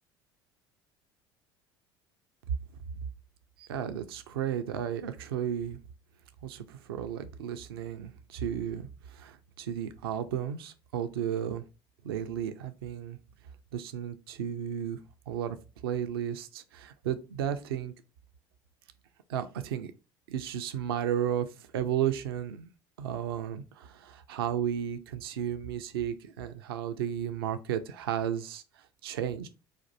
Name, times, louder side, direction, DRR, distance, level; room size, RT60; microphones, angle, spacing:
voice 1, 3.6-5.8 6.4-11.6 12.0-13.2 13.7-15.0 15.3-15.6 15.8-17.9 19.3-19.9 20.3-22.7 23.0-29.5, right 9 dB, 75° right, 9 dB, 0.4 m, -33 dB
4.2 x 2.5 x 4.0 m, 0.31 s
figure-of-eight pair, 65°, 13 cm